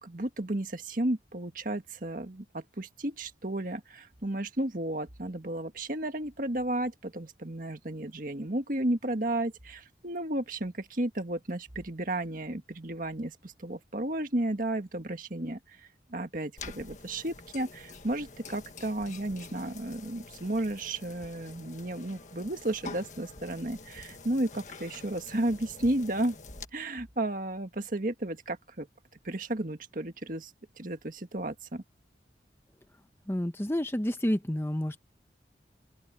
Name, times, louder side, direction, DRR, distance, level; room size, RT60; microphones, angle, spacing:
voice 1, 0.0-26.4 26.7-28.9 29.2-30.5 30.8-31.8, right 1 dB, 50° right, 1.8 m, -33 dB
sound 1, 16.6-26.7, left 3 dB, 45° left, 1.7 m, -47 dB
voice 2, 33.3-35.0, equal, 15° left, 1.0 m, -29 dB
open air
head